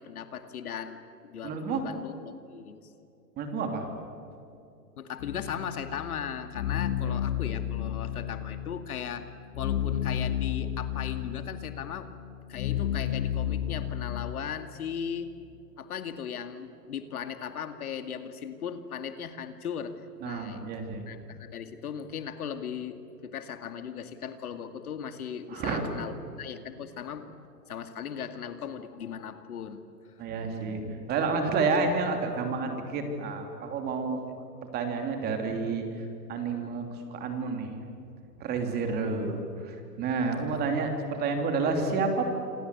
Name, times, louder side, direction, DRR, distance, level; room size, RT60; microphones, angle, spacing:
voice 1, 0.0-2.8 5.0-9.3 9.6-12.2 12.5-15.3 15.8-20.6 21.1-29.8 40.3-40.6, left 8 dB, 65° left, 9 dB, 2.3 m, -38 dB
voice 2, 1.4-1.8 3.4-3.8 20.2-21.1 25.5-25.8 30.2-34.3 34.7-36.8 37.1-37.7 38.4-42.2, right 4 dB, 20° right, 5 dB, 3.1 m, -30 dB
sound 1, 5.2-14.3, left 10 dB, 45° left, 5.3 m, -32 dB
27.5 x 26.0 x 8.3 m, 2.7 s
hypercardioid pair, 150°, 48 cm